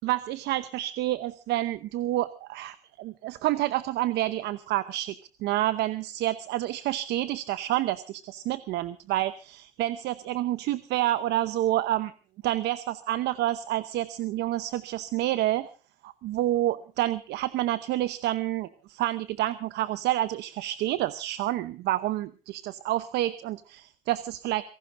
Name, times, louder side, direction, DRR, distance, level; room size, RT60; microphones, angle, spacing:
voice 1, 0.0-5.1 5.4-12.1 12.4-15.7 16.0-24.6, right 14 dB, 80° right, 14 dB, 0.9 m, -28 dB
26.5 x 17.5 x 2.6 m, 0.36 s
cardioid pair, 110°, 17 cm